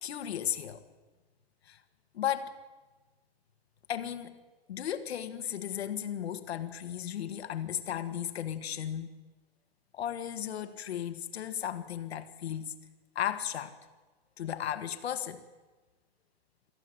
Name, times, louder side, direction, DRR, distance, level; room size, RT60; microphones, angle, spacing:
voice 1, 0.0-0.8 1.7-1.8 2.1-2.5 3.9-4.4 4.7-9.1 9.9-12.8 13.2-13.7 14.4-15.4, left 10 dB, 80° left, 9 dB, 1.9 m, -35 dB
25.0 x 14.5 x 7.9 m, 1.2 s
hypercardioid pair, 150°, 31 cm